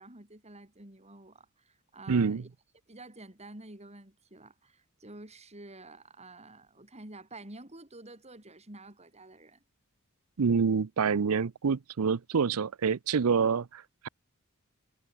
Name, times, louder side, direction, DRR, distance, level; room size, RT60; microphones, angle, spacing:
voice 1, 0.0-2.5 2.9-9.6, right 2 dB, 30° right, 5.0 m, -49 dB
voice 2, 2.1-2.4 10.4-14.1, right 5 dB, 80° right, 0.6 m, -27 dB
head